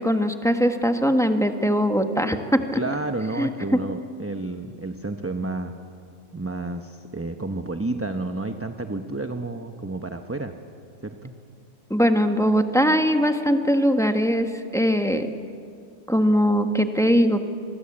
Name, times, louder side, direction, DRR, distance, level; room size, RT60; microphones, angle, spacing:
voice 1, 0.0-2.4 3.4-3.5 11.9-15.3 16.1-17.4, equal, ahead, 6 dB, 1.2 m, -21 dB
voice 2, 2.7-5.7 6.3-10.6 11.0-11.3, right 2 dB, 15° right, 6 dB, 0.7 m, -30 dB
27.5 x 22.0 x 8.6 m, 2.4 s
omnidirectional pair, 1.4 m